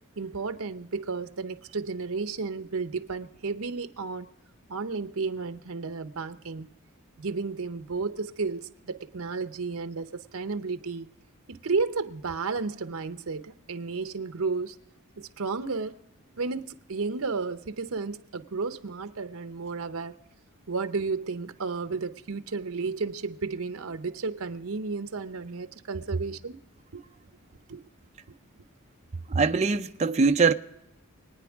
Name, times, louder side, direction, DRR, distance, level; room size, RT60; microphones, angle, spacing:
voice 1, 0.2-4.3 4.7-6.7 7.2-11.1 11.5-14.8 15.2-16.0 16.4-20.1 20.7-26.6 26.9-27.0 27.7-27.8, right 4 dB, 70° right, 0.8 m, -32 dB
voice 2, 29.3-30.5, right 4 dB, 30° right, 0.4 m, -22 dB
25.0 x 9.4 x 3.5 m
head